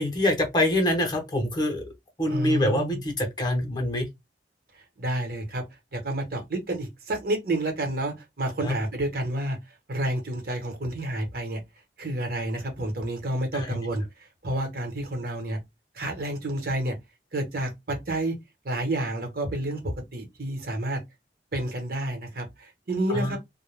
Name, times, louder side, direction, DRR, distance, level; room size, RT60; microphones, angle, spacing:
voice 1, 0.0-1.8 2.2-4.1 8.6-8.7 13.5-13.8 23.1-23.4, left 1 dB, 25° left, 0.7 m, -25 dB
voice 2, 2.3-3.0 5.0-5.6 5.9-9.6 9.9-11.6 12.0-14.0 14.4-15.6 15.9-17.0 17.3-18.3 18.6-19.8 20.1-21.0 21.5-23.4, right 1 dB, 55° right, 1.0 m, -29 dB
2.2 x 2.1 x 3.2 m
head